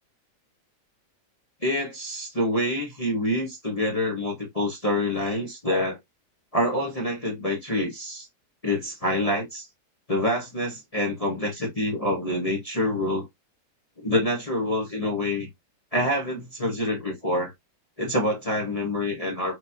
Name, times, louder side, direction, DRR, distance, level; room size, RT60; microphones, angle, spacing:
voice 1, 1.6-6.0 6.5-8.3 8.6-9.7 10.1-13.2 14.0-15.5 15.9-17.5 18.0-19.6, left 1 dB, 20° left, 1.4 m, -26 dB
6.2 x 3.0 x 2.8 m
omnidirectional pair, 1.8 m